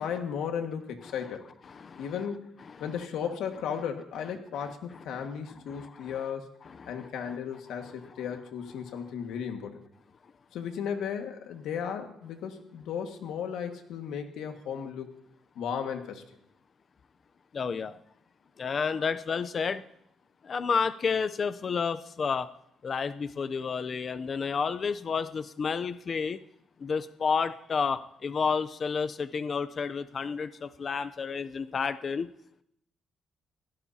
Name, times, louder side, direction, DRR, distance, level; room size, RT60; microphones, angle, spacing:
voice 1, 0.0-1.5 2.0-2.5 2.8-6.5 6.9-9.8 10.5-15.1 15.6-16.2, left 7 dB, 85° left, 4 dB, 1.8 m, -35 dB
voice 2, 1.7-2.1 2.8-2.9 5.1-5.3 5.7-6.2 6.7-7.1 17.5-18.0 18.6-19.8 20.4-22.5 22.8-26.4 26.8-32.3, left 5 dB, 45° left, 11 dB, 0.6 m, -31 dB
25.5 x 16.5 x 2.9 m, 0.80 s
cardioid pair, 95°, 0 cm